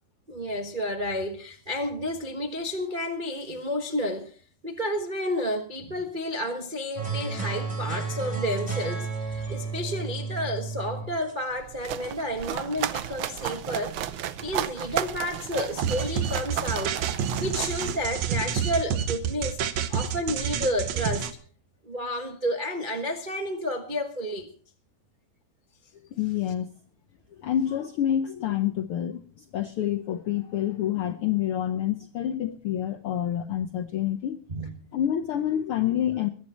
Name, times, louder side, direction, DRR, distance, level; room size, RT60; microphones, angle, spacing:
voice 1, 0.3-4.3 4.6-14.0 14.4-17.0 17.3-19.6 19.9-21.3 21.8-24.5 34.5-34.7, left 1 dB, 45° right, 0.6 m, -31 dB
sound 1, 7.0-12.3, right 4 dB, 10° right, 3.6 m, -32 dB
sound 2, 11.5-18.5, right 11 dB, 90° right, 1.1 m, -34 dB
sound 3, 15.8-21.3, right 8 dB, 70° right, 2.3 m, -28 dB
voice 2, 26.1-26.7 27.4-34.4 34.9-36.3, left 10 dB, 75° left, 1.2 m, -27 dB
21.5 x 10.5 x 4.2 m
omnidirectional pair, 3.4 m